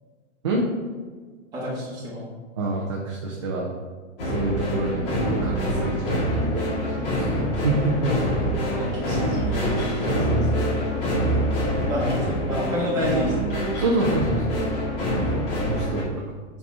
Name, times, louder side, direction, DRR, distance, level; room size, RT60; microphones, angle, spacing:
voice 1, 1.5-2.3 8.8-10.3 10.6-11.1 11.9-13.5, equal, 10° right, -8 dB, 1.5 m, -30 dB
voice 2, 2.6-3.7 4.2-7.4 7.6-8.3 10.0-10.6 11.8-11.9 13.8-14.8 15.7-16.1, right 2 dB, 25° right, -2 dB, 0.4 m, -27 dB
sound 1, 4.2-16.0, equal, 45° left, 2.1 m, -25 dB
6.9 x 4.2 x 4.6 m, 1.5 s
supercardioid pair, 175°, 37 cm